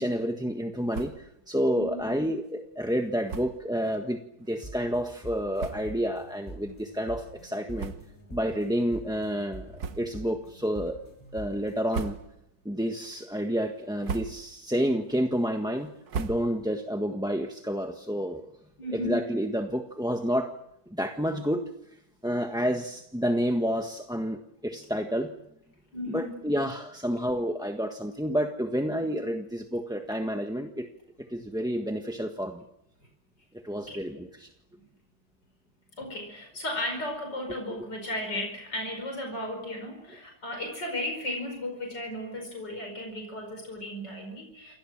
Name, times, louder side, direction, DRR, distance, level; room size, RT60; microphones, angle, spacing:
voice 1, 0.0-4.2 4.5-7.9 8.3-11.0 11.3-12.2 12.6-15.9 16.2-18.5 18.9-20.5 20.9-21.6 22.2-25.3 26.1-30.9 31.3-32.6 33.6-34.5, equal, 5° right, 4 dB, 1.3 m, -29 dB
sound 1, 0.9-1.4 1.7-1.8 2.1-2.2 3.2-3.7 4.4-4.5 5.2-5.3 5.5-6.1 6.6-6.8 7.7-8.4 8.7-8.9 9.7-10.3 10.8-11.2 11.7-12.6 13.0-13.4 13.8-14.7 15.0-16.9, right 5 dB, 65° right, 1.7 m, -39 dB
voice 2, 1.7-2.1 18.8-19.2 25.9-26.4 33.9-34.1 36.0-44.7, left 1 dB, 90° left, 3 dB, 5.6 m, -35 dB
sound 2, 4.6-11.8, equal, 15° left, 6.8 m, -46 dB
28.5 x 23.5 x 7.5 m, 0.82 s
omnidirectional pair, 1.8 m